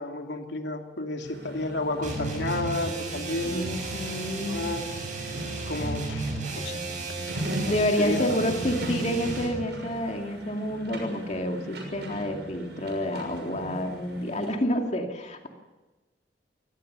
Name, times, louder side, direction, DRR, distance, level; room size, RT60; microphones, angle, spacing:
voice 1, 0.0-3.7 4.4-4.8 5.7-6.8 7.6-8.5, left 2 dB, 90° left, 3 dB, 3.0 m, -31 dB
sound 1, 1.2-14.6, right 1 dB, 75° right, 6.4 m, -39 dB
sound 2, 2.0-9.6, right 3 dB, 45° right, 7.7 m, -34 dB
voice 2, 3.4-4.6 7.7-15.5, equal, 40° left, 3 dB, 2.4 m, -29 dB
24.0 x 19.0 x 6.8 m, 1.2 s
head